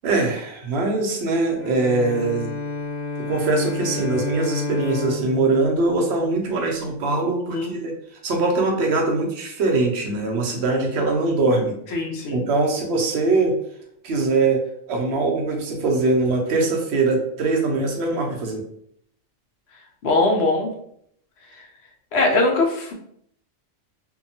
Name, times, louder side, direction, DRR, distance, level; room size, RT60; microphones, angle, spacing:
voice 1, 0.0-2.5 3.3-11.7 12.3-13.6 14.0-14.6 14.9-18.6, right 3 dB, 65° right, 1 dB, 0.8 m, -22 dB
Bowed string instrument, 1.6-6.8, left 4 dB, 80° left, 0.4 m, -31 dB
voice 2, 11.9-12.4 20.0-20.7 21.6-21.7 22.1-22.9, left 2 dB, 65° left, 1 dB, 0.8 m, -21 dB
2.8 x 2.2 x 2.6 m, 0.70 s
omnidirectional pair, 1.3 m